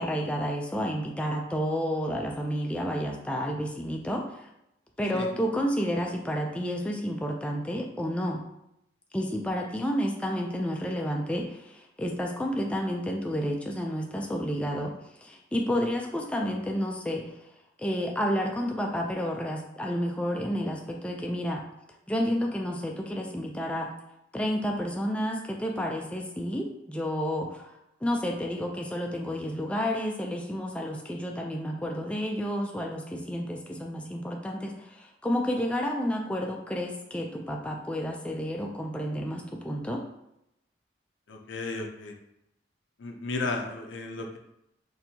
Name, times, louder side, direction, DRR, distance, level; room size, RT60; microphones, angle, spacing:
voice 1, 0.0-4.5 5.0-8.4 9.1-17.3 17.8-21.6 22.1-23.9 24.3-27.7 28.0-40.0, equal, 5° left, 1 dB, 0.3 m, -30 dB
voice 2, 41.3-42.1 43.0-44.4, left 3 dB, 85° left, 3 dB, 0.5 m, -34 dB
4.3 x 2.7 x 2.7 m, 0.83 s
head